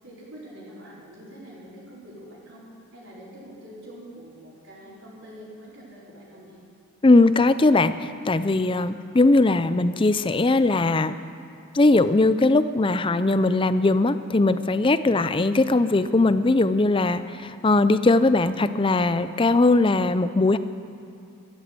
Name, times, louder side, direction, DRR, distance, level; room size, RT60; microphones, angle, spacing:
voice 1, 0.0-2.6 2.9-6.6, equal, 65° right, -9 dB, 4.7 m, -45 dB
voice 2, 7.0-11.2 11.7-20.6, left 2 dB, 25° left, 13 dB, 0.4 m, -20 dB
13.5 x 12.0 x 8.2 m, 2.6 s
head